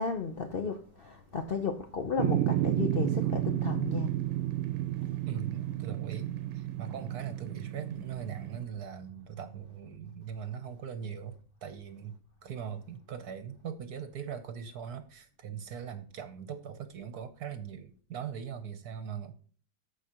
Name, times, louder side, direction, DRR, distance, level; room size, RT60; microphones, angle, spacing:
voice 1, 0.0-4.1, left 5 dB, 90° left, 0.5 m, -33 dB
sound 1, 2.2-8.6, right 14 dB, 85° right, 1.4 m, -32 dB
voice 2, 5.2-11.3 11.6-12.1 12.4-19.3, right 8 dB, 60° right, 1.2 m, -40 dB
15.0 x 5.0 x 2.9 m
omnidirectional pair, 2.1 m